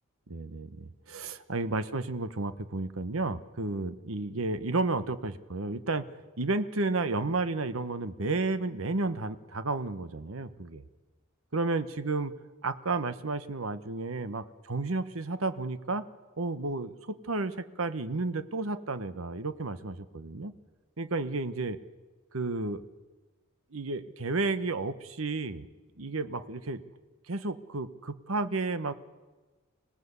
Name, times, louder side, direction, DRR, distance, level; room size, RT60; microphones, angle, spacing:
voice 1, 0.3-6.1 6.4-10.8 11.5-12.3 12.6-16.0 16.4-20.5 21.0-21.8 22.3-22.8 23.7-25.7 26.0-26.8 27.3-28.9, right 3 dB, 80° right, 12 dB, 1.1 m, -32 dB
26.0 x 17.5 x 8.2 m, 1.3 s
head